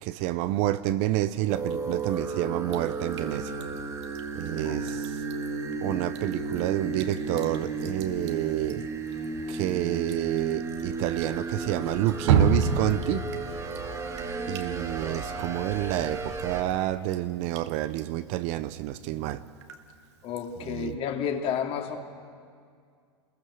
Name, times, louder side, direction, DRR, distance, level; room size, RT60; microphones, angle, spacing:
voice 1, 0.0-3.5 4.4-5.1 5.8-8.9 9.5-13.3 14.5-19.4 20.7-21.0, right 14 dB, 50° right, 0.8 m, -29 dB
sound 1, 1.5-16.6, right 3 dB, 20° right, 2.8 m, -34 dB
Drip, 2.7-20.9, right 6 dB, 70° right, 2.0 m, -35 dB
voice 2, 4.6-5.0 20.2-22.0, left 8 dB, 40° left, 2.7 m, -31 dB
28.5 x 22.0 x 6.4 m
hypercardioid pair, 110°, 15 cm